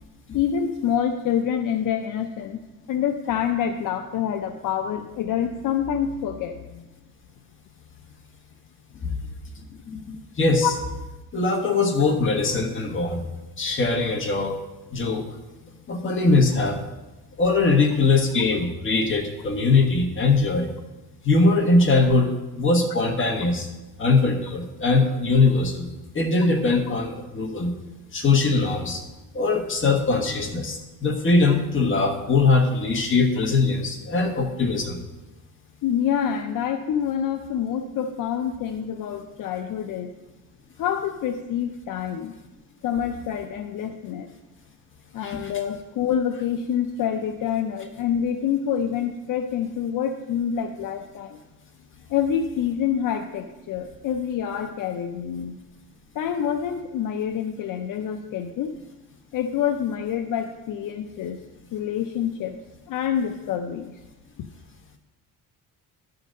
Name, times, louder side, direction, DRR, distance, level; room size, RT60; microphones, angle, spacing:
voice 1, 0.3-6.8 9.0-9.1 10.6-10.7 35.8-40.1 40.8-42.3 42.8-44.3 45.1-51.4 52.1-55.6 56.1-58.7 59.3-61.4 61.7-62.6 62.9-63.9, left 8 dB, 65° left, 6 dB, 0.6 m, -27 dB
voice 2, 9.9-10.7 11.3-13.3 13.6-14.5 14.9-15.4 15.9-16.8 17.4-20.7 21.2-22.3 22.6-23.7 24.0-25.9 26.1-27.7 28.1-29.0 29.3-35.0 45.2-45.5, left 3 dB, 35° left, 3 dB, 1.5 m, -21 dB
12.0 x 3.9 x 6.5 m, 1.1 s
cardioid pair, 120°, 35 cm